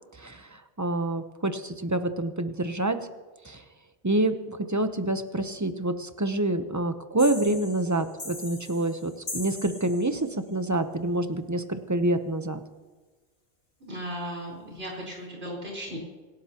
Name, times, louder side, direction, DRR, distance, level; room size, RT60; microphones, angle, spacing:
voice 1, 0.1-3.0 3.4-3.6 4.0-12.6, right 1 dB, 20° right, 8 dB, 0.8 m, -27 dB
sound 1, 7.2-10.4, left 2 dB, 50° left, 2.3 m, -40 dB
voice 2, 13.8-16.0, equal, 75° right, -3 dB, 4.4 m, -36 dB
27.5 x 12.5 x 2.9 m, 1.3 s
omnidirectional pair, 1.1 m